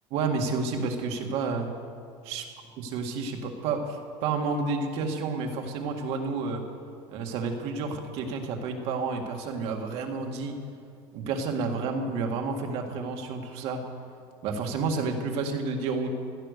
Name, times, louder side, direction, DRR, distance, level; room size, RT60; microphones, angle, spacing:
voice 1, 0.1-1.7 2.2-2.4 2.8-6.6 7.1-10.6 11.1-13.8 14.4-16.1, right 4 dB, 60° right, 3 dB, 1.9 m, -30 dB
16.0 x 12.0 x 6.7 m, 2.2 s
cardioid pair, 160°, 12 cm